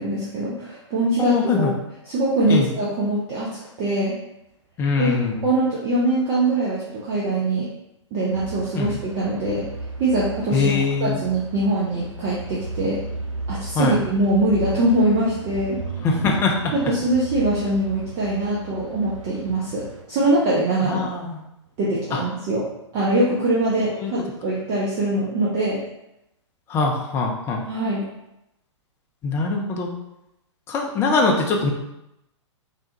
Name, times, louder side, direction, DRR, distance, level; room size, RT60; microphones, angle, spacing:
voice 1, 0.0-1.7 2.1-3.5 3.8-4.2 5.0-5.2 5.4-7.7 8.1-9.7 10.0-10.7 11.0-13.0 13.5-15.8 16.7-21.0 21.8-22.6 22.9-25.8 27.7-28.0, right 1 dB, 30° right, -6 dB, 0.6 m, -22 dB
voice 2, 1.2-1.7 2.5-2.7 4.8-5.4 8.7-9.0 10.5-11.2 13.7-14.0 16.0-16.7 20.8-21.4 22.1-22.2 24.0-24.1 26.7-27.6 29.2-29.9 30.7-31.7, left 4 dB, 15° left, 0 dB, 0.4 m, -22 dB
sound 1, 8.3-20.0, right 2 dB, 90° right, 0.4 m, -35 dB
3.3 x 2.2 x 2.8 m, 0.87 s
figure-of-eight pair, 110°, 16 cm